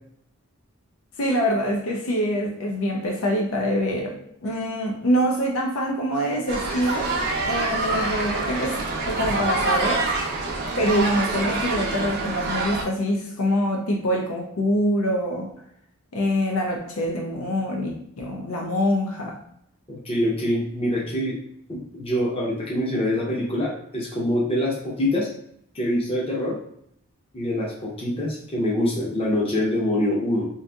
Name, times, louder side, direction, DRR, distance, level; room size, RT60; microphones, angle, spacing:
voice 1, 1.2-7.1 7.4-10.1 10.8-15.5 16.1-19.4, equal, 70° left, 1 dB, 0.5 m, -25 dB
sound 1, 6.5-12.8, right 3 dB, 45° right, 0.5 m, -26 dB
voice 2, 19.9-21.4 21.7-25.3 25.7-26.6 27.3-30.5, left 1 dB, 25° left, -4 dB, 0.7 m, -25 dB
4.0 x 2.5 x 2.2 m, 0.72 s
head